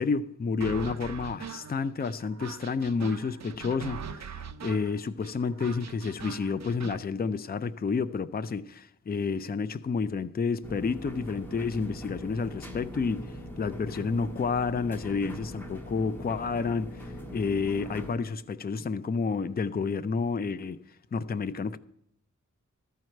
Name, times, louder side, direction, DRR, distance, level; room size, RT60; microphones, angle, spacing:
voice 1, 0.0-13.3 13.6-20.8 21.1-21.8, left 5 dB, 30° left, 0.4 m, -30 dB
sound 1, 0.6-7.0, right 6 dB, 60° right, 0.6 m, -41 dB
sound 2, 10.6-18.1, equal, 5° left, 1.6 m, -41 dB
13.5 x 4.6 x 7.6 m
wide cardioid pair, 100°, 31 cm